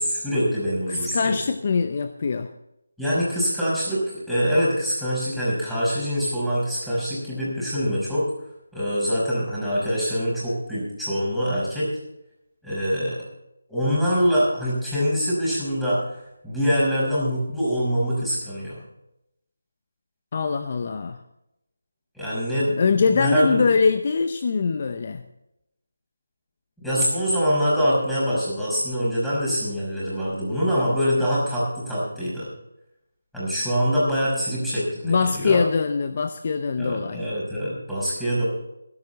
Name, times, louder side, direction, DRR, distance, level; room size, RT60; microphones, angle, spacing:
voice 1, 0.0-1.3 3.0-8.3 8.7-11.9 12.6-13.2 13.7-18.8 22.1-22.8 23.0-23.6 26.8-32.5 33.3-35.6 36.8-38.4, equal, ahead, -10 dB, 5.6 m, -24 dB
voice 2, 0.9-2.5 20.3-21.2 22.8-25.2 35.0-37.2, left 5 dB, 40° left, 9 dB, 0.7 m, -23 dB
16.0 x 12.5 x 4.1 m, 0.84 s
figure-of-eight pair, 165°, 0 cm